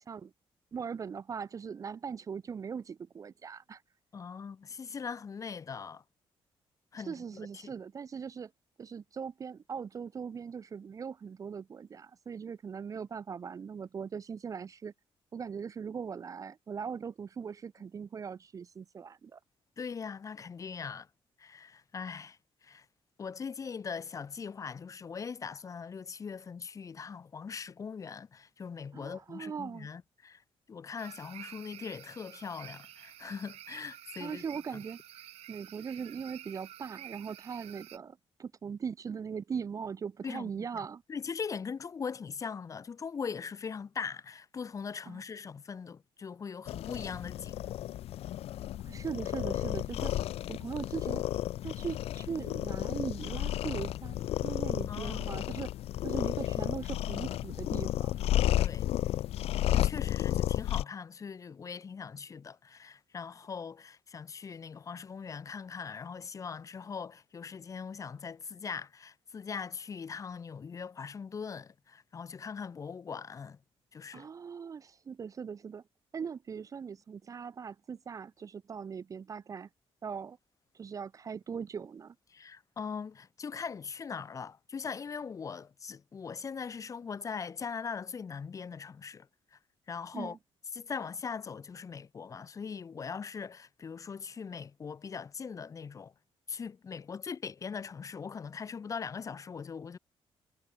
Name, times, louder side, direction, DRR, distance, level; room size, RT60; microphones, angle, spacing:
voice 1, 0.7-3.8 7.0-8.5 8.8-14.9 15.3-19.4 28.9-29.9 34.2-35.0 35.5-41.0 45.1-45.2 48.8-50.1 50.5-51.3 51.6-55.7 56.0-58.2 74.1-75.8 76.1-79.7 80.0-80.4 80.7-82.1 90.1-90.4, right 6 dB, 35° right, 1.0 m, -40 dB
voice 2, 4.1-6.0 6.9-7.7 19.8-21.1 21.4-22.9 23.2-30.4 30.7-34.4 40.2-47.6 54.9-55.2 58.6-58.9 59.7-73.6 73.9-74.3 82.3-89.3 89.5-89.6 89.9-90.4 90.7-96.1 96.5-100.0, left 6 dB, 30° left, 3.8 m, -41 dB
sound 1, 31.0-38.0, right 13 dB, 90° right, 1.9 m, -50 dB
sound 2, 46.7-60.8, left 13 dB, 80° left, 0.7 m, -32 dB
cardioid pair, 165°, 10 cm